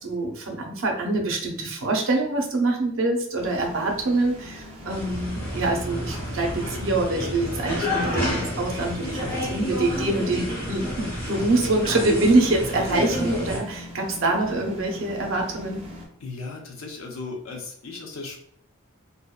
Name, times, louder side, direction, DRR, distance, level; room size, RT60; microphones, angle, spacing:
voice 1, 0.0-15.8, right 2 dB, 75° right, 2 dB, 0.6 m, -25 dB
sound 1, 3.4-16.1, left 1 dB, 30° right, 0.6 m, -42 dB
sound 2, 4.9-13.6, left 1 dB, 10° left, 1.0 m, -29 dB
voice 2, 9.0-9.4 12.4-12.6 16.2-18.4, left 3 dB, 80° left, 1 dB, 0.6 m, -37 dB
2.6 x 2.1 x 2.3 m, 0.65 s
head